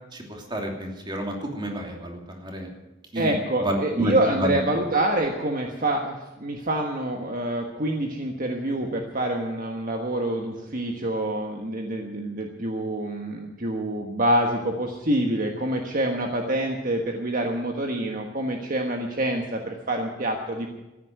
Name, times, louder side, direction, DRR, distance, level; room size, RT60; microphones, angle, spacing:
voice 1, 0.1-2.7 3.1-3.4 3.6-4.6, right 1 dB, 25° right, 1 dB, 2.9 m, -29 dB
voice 2, 3.1-20.7, right 1 dB, 45° right, 2 dB, 1.4 m, -26 dB
14.5 x 10.0 x 9.3 m, 1.0 s
head